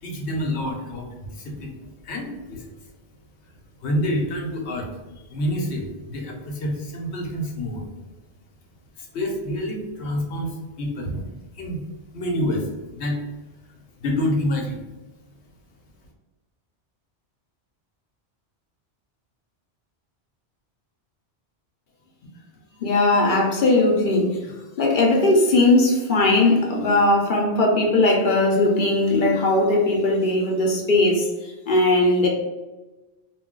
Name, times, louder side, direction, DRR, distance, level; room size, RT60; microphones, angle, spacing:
voice 1, 0.0-1.8 2.0-2.7 3.8-8.1 8.9-11.3 11.5-11.8 12.1-13.3 14.0-14.8, left 1 dB, 80° left, 0 dB, 1.0 m, -28 dB
voice 2, 22.8-24.4 24.8-32.3, left 2 dB, 55° left, -1 dB, 0.7 m, -19 dB
2.3 x 2.2 x 3.6 m, 1.1 s
omnidirectional pair, 1.1 m